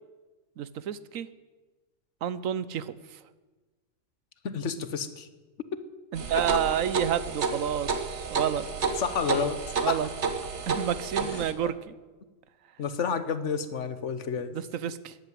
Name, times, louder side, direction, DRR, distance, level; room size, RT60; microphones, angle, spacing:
voice 1, 0.6-1.3 2.2-3.2 6.1-8.7 9.7-10.1 10.7-11.9 14.5-15.2, right 9 dB, 90° right, 16 dB, 1.2 m, -30 dB
voice 2, 4.4-5.3 9.0-9.6 9.9-10.0 11.2-11.7 12.8-14.5, left 6 dB, 65° left, 12 dB, 1.3 m, -30 dB
sound 1, 6.2-11.5, right 5 dB, 60° right, 1.5 m, -31 dB
14.0 x 10.0 x 9.2 m, 1.3 s
omnidirectional pair, 1.3 m